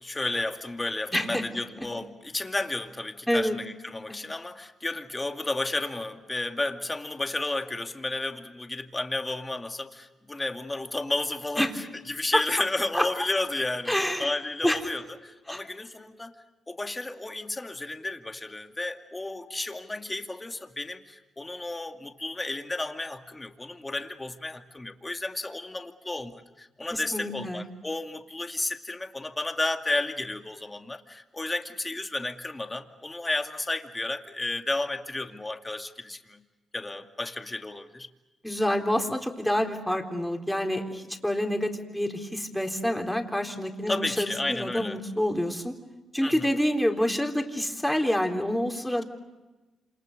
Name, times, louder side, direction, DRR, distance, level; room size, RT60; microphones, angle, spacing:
voice 1, 0.0-13.9 14.2-16.4 16.7-36.4 36.7-38.1 43.9-45.0 46.2-46.5, left 2 dB, 20° left, 6 dB, 2.4 m, -32 dB
voice 2, 1.1-1.4 3.3-3.6 11.6-11.7 12.3-12.4 12.9-13.0 13.9-14.3 14.6-14.8 15.5-15.6 26.9-27.7 38.4-45.7 46.1-49.0, equal, 5° left, 3 dB, 3.9 m, -27 dB
28.0 x 27.5 x 6.7 m, 1.1 s
supercardioid pair, 60°, 0 cm